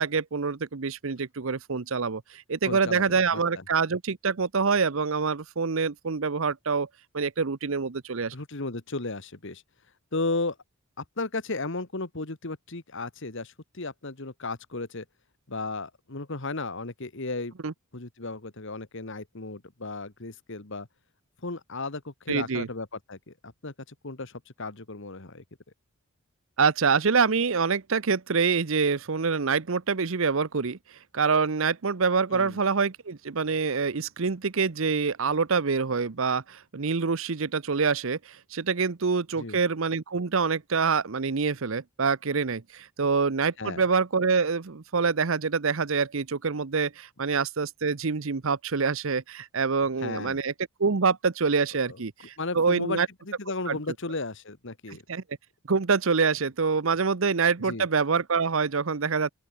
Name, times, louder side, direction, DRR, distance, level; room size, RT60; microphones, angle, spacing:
voice 1, 0.0-6.9 7.1-8.3 17.6-17.7 22.3-22.7 26.6-30.8 31.1-50.5 50.8-53.1 53.7-53.8 54.9-55.2 55.7-59.3, right 5 dB, 65° right, 0.8 m, -26 dB
voice 2, 2.6-3.6 8.3-9.6 10.1-10.6 11.0-15.0 15.5-17.5 17.9-20.9 21.4-25.4 32.3-32.6 39.4-39.6 43.6-43.8 50.0-50.4 51.9-52.0 52.4-55.0 57.6-57.8, left 3 dB, 60° left, 1.7 m, -35 dB
open air
head